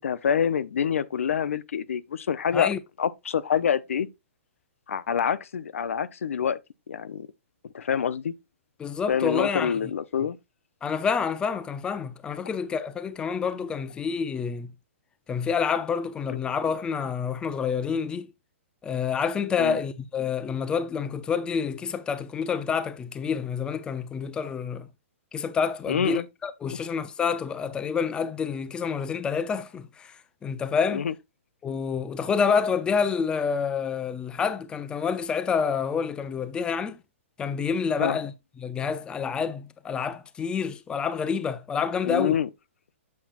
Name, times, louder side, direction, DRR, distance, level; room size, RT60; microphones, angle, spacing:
voice 1, 0.0-2.7 3.0-4.1 4.9-6.6 6.9-7.3 7.7-8.4 9.1-10.4 16.3-16.4 19.6-19.8 25.9-26.3 30.9-31.1 38.0-38.2 42.0-42.5, left 7 dB, 85° left, 0.5 m, -26 dB
voice 2, 8.8-9.8 10.8-14.7 15.3-18.3 18.8-24.9 25.3-31.1 31.6-37.0 37.4-38.3 38.6-42.4, left 6 dB, 10° left, 0.5 m, -28 dB
7.3 x 5.7 x 2.4 m
hypercardioid pair, 140°, 7 cm